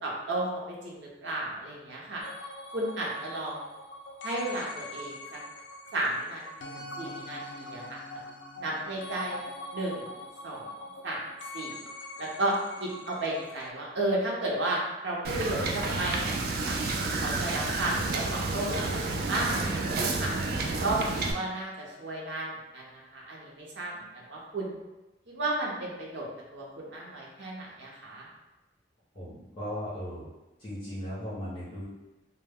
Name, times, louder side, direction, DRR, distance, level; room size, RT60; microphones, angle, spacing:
voice 1, 0.0-2.2 2.7-3.7 4.2-5.4 5.9-8.0 8.6-9.4 9.7-10.0 10.4-10.7 11.0-11.3 11.5-11.8 12.2-16.4 16.6-20.3 20.8-24.8 25.3-26.3 26.5-28.3, right 1 dB, 85° right, -3 dB, 0.6 m, -33 dB
sound 1, 2.2-13.7, left 2 dB, 80° left, 0.3 m, -43 dB
Wind / Boat Water vehicle, 15.2-21.3, right 3 dB, 55° right, 0.3 m, -30 dB
voice 2, 29.1-30.3 30.6-31.8, equal, 30° left, -10 dB, 0.7 m, -37 dB
2.1 x 2.1 x 3.4 m, 1.0 s
head